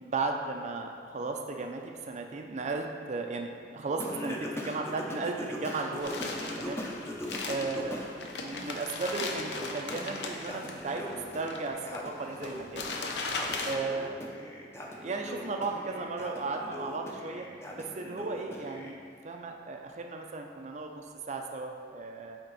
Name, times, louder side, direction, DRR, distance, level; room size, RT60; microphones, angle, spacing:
voice 1, 0.0-6.8 7.5-8.0 8.3-12.9 13.7-14.2 15.0-17.4 17.7-19.0 19.2-22.4, right 3 dB, 40° right, 3 dB, 0.4 m, -35 dB
Singing, 4.0-8.1 8.5-18.9, left 1 dB, 15° left, 0.6 m, -40 dB
sound 1, 6.0-13.8, left 3 dB, 65° left, 0.6 m, -38 dB
8.8 x 3.6 x 4.0 m, 2.1 s
head